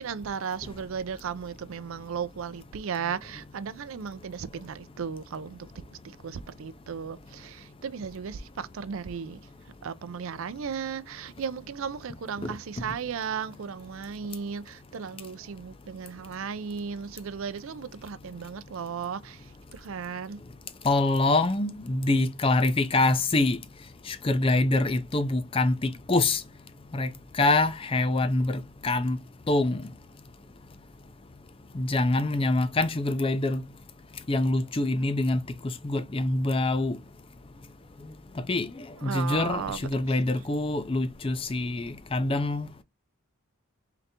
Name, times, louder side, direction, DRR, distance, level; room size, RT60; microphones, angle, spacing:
voice 1, 0.0-5.7 6.2-9.4 9.8-19.4 19.7-20.4 39.0-39.8, right 6 dB, 65° right, 0.4 m, -35 dB
voice 2, 20.8-23.6 24.1-26.4 26.9-27.1 27.4-29.2 29.5-29.8 31.7-33.6 34.3-35.4 35.8-37.0 38.5-38.7 39.0-42.7, left 2 dB, 25° left, 0.4 m, -25 dB
3.8 x 3.3 x 2.7 m
head